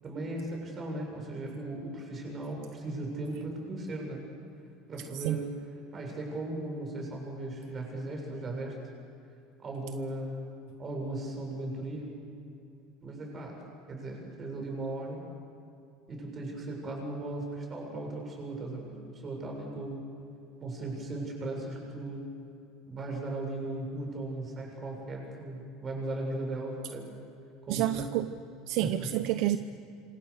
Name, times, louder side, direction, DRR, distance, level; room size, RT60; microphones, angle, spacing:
voice 1, 0.0-4.2 4.9-5.5 5.9-8.8 9.6-10.5 10.8-12.1 13.0-13.6 13.9-15.2 16.1-20.1 20.6-22.3 22.9-27.1 27.7-28.1 28.8-29.1, right 2 dB, 25° right, 1 dB, 7.3 m, -37 dB
voice 2, 27.7-28.3 28.7-29.6, right 14 dB, 60° right, 10 dB, 0.8 m, -28 dB
27.0 x 26.0 x 6.7 m, 2.6 s
cardioid pair, 150°, 0 cm